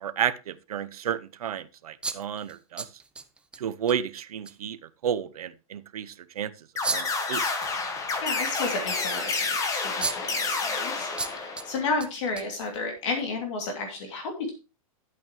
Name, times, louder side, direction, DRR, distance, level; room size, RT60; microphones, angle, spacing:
voice 1, 0.0-2.9 3.6-6.5 6.9-7.4, right 9 dB, 85° right, 13 dB, 0.8 m, -32 dB
sound 1, 2.0-3.6 3.9-4.0 4.5-4.6 6.8-7.2 9.5-9.6 10.0-10.4 11.2-11.7 12.0-13.0, right 3 dB, 5° right, 0.5 m, -33 dB
sound 2, 6.8-11.9, left 4 dB, 15° left, 1.4 m, -29 dB
voice 2, 8.2-14.5, left 3 dB, 55° left, 3 dB, 2.7 m, -32 dB
11.0 x 8.5 x 3.1 m, 0.30 s
hypercardioid pair, 140°, 19 cm